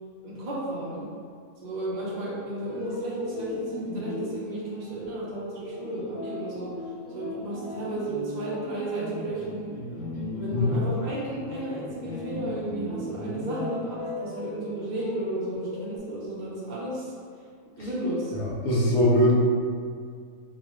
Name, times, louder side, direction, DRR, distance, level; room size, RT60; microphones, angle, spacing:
voice 1, 0.2-1.0 1.6-6.7 7.1-9.7 10.3-17.1 17.8-18.3, right 1 dB, 40° right, -8 dB, 0.8 m, -33 dB
sound 1, 2.6-16.0, left 1 dB, 90° left, 1.4 m, -37 dB
voice 2, 18.4-19.3, left 1 dB, 60° left, -6 dB, 0.9 m, -21 dB
4.0 x 2.3 x 3.0 m, 2.1 s
omnidirectional pair, 1.4 m